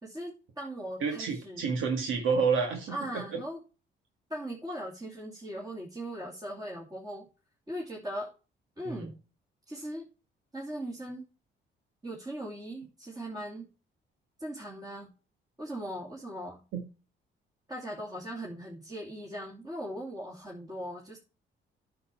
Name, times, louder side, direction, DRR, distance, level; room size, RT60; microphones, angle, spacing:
voice 1, 0.0-1.7 2.9-3.6 4.3-7.3 7.7-8.3 8.8-9.1 9.7-10.1 10.5-11.3 12.0-13.7 14.4-15.1 15.6-16.6 17.7-21.2, right 1 dB, 20° right, -2 dB, 2.9 m, -39 dB
voice 2, 1.0-3.4 8.9-9.1 16.7-16.8, right 5 dB, 85° right, 3 dB, 1.9 m, -29 dB
9.8 x 7.1 x 4.5 m, 0.34 s
cardioid pair, 90°, 20 cm